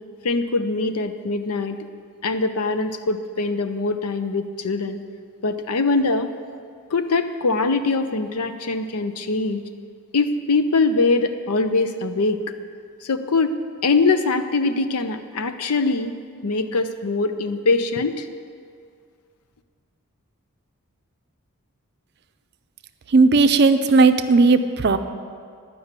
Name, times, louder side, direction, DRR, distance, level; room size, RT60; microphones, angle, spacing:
voice 1, 0.2-1.8 2.2-5.0 5.4-6.3 6.9-9.6 10.1-12.4 13.0-13.6 13.8-16.1 16.4-18.3, left 3 dB, 90° left, 9 dB, 0.6 m, -22 dB
voice 2, 23.1-25.0, right 3 dB, 50° right, 9 dB, 0.5 m, -15 dB
11.5 x 5.4 x 8.1 m, 2.2 s
head